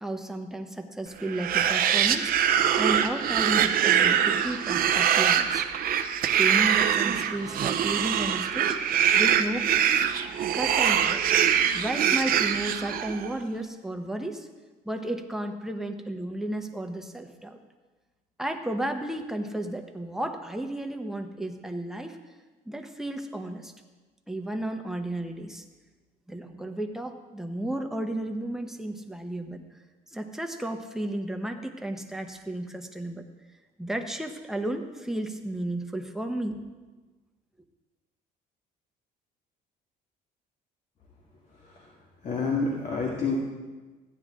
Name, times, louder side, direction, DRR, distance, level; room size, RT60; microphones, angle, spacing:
voice 1, 0.0-2.3 2.8-5.6 6.3-8.8 9.2-9.7 10.5-11.2 11.7-14.5 14.8-17.6 18.4-22.2 22.7-23.7 24.3-25.6 26.3-29.6 30.1-33.2 33.8-36.6, right 1 dB, ahead, 4 dB, 1.0 m, -33 dB
sound 1, 1.3-13.3, right 9 dB, 60° right, 0.8 m, -23 dB
voice 2, 42.2-43.4, left 4 dB, 45° left, -1 dB, 1.8 m, -28 dB
14.5 x 9.8 x 3.7 m, 1.3 s
cardioid pair, 110°, 17 cm